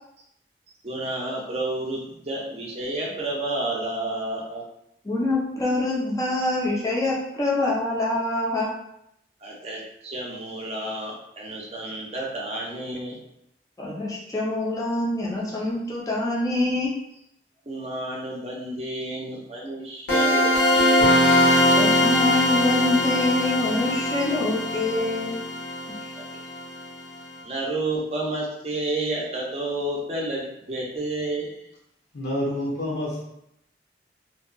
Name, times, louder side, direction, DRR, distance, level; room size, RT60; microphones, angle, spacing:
voice 1, 0.8-4.6 9.4-13.2 17.7-21.2 26.2-26.3 27.4-31.5, right 2 dB, 35° right, -3 dB, 0.5 m, -30 dB
voice 2, 5.0-8.7 13.8-16.9 21.8-25.4, left 2 dB, 20° left, -4 dB, 0.4 m, -25 dB
sound 1, 20.1-26.8, left 1 dB, 85° left, 1.2 m, -21 dB
voice 3, 32.1-33.2, left 1 dB, 70° left, -4 dB, 0.8 m, -28 dB
2.6 x 2.2 x 2.5 m, 0.78 s
head